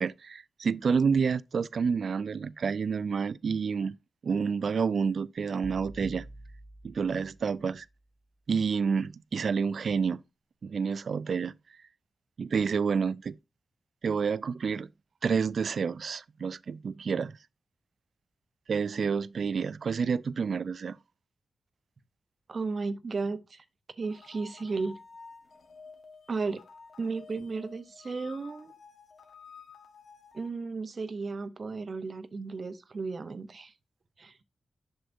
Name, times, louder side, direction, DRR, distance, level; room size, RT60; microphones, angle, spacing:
voice 1, 0.0-4.0 4.2-6.2 6.8-7.9 8.5-10.2 10.6-11.5 12.4-13.4 14.0-14.9 15.2-17.3 18.7-21.0, right 5 dB, 70° right, 0.3 m, -29 dB
sound 1, 5.6-7.8, right 1 dB, 20° right, 0.7 m, -46 dB
voice 2, 22.5-23.6 24.0-25.0 26.3-26.6 27.0-28.7 30.3-33.7 34.2-34.4, right 4 dB, 55° right, 0.7 m, -34 dB
sound 2, 24.0-30.5, left 5 dB, 70° left, 1.3 m, -52 dB
7.9 x 6.5 x 2.5 m
cardioid pair, 60°, 0 cm